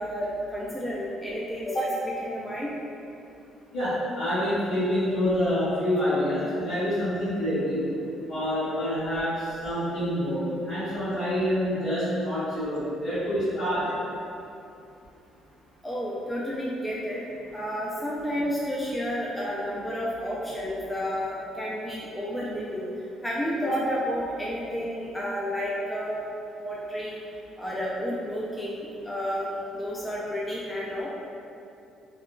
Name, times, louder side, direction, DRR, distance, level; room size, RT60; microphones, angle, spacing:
voice 1, 0.0-2.7 15.8-17.2 17.5-22.9 23.2-26.2 26.6-27.2 27.6-31.1, equal, 10° left, -6 dB, 0.3 m, -31 dB
voice 2, 3.7-7.9 8.3-13.9, equal, 70° left, -12 dB, 1.5 m, -27 dB
2.8 x 2.1 x 2.4 m, 2.7 s
cardioid pair, 95°, 0 cm